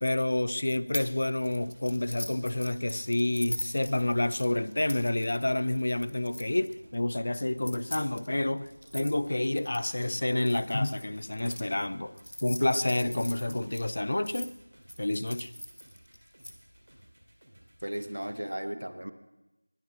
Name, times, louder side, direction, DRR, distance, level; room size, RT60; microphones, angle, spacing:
voice 1, 0.0-12.1 12.4-14.5 15.0-15.5, left 1 dB, 35° left, 0.5 m, -29 dB
sound 1, 0.9-1.1 1.4-6.7 7.5-11.6 12.2-14.5 14.9-16.5, equal, 75° left, 2.0 m, -41 dB
sound 2, 1.3-18.5, right 1 dB, 45° right, 2.5 m, -57 dB
voice 2, 17.8-19.1, right 1 dB, 70° right, 1.2 m, -35 dB
20.0 x 8.4 x 6.3 m
figure-of-eight pair, 175°, 0 cm